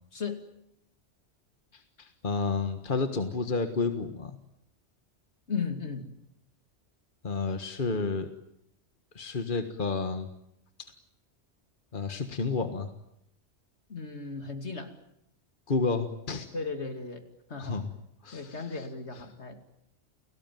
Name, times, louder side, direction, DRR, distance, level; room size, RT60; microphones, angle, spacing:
voice 1, 0.1-0.5 5.5-6.1 13.9-14.9 16.5-17.2 17.5-17.8 18.3-19.7, left 5 dB, 70° left, 7 dB, 3.0 m, -36 dB
voice 2, 1.7-4.4 7.2-8.3 9.1-10.3 10.8-10.9 11.9-12.9 15.7-16.5 17.6-17.9 18.2-18.7, left 4 dB, 45° left, 8 dB, 1.7 m, -30 dB
30.0 x 19.0 x 9.3 m, 0.79 s
omnidirectional pair, 1.2 m